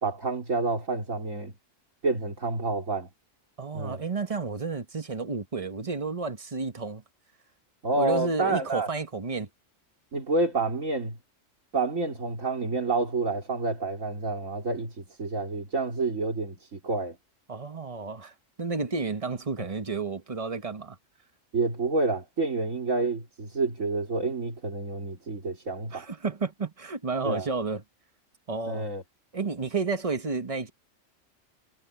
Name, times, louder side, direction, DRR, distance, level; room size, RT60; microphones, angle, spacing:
voice 1, 0.0-1.5 2.0-3.1 3.7-4.0 7.8-8.9 10.1-11.2 11.7-17.2 19.6-19.7 21.5-26.1 27.2-27.5 28.7-29.0, right 3 dB, 80° right, 3.7 m, -29 dB
voice 2, 3.6-7.0 7.9-9.5 17.5-18.3 18.6-21.0 25.9-27.8 28.5-28.9 29.3-30.7, right 4 dB, 25° right, 1.3 m, -31 dB
omnidirectional pair, 1.3 m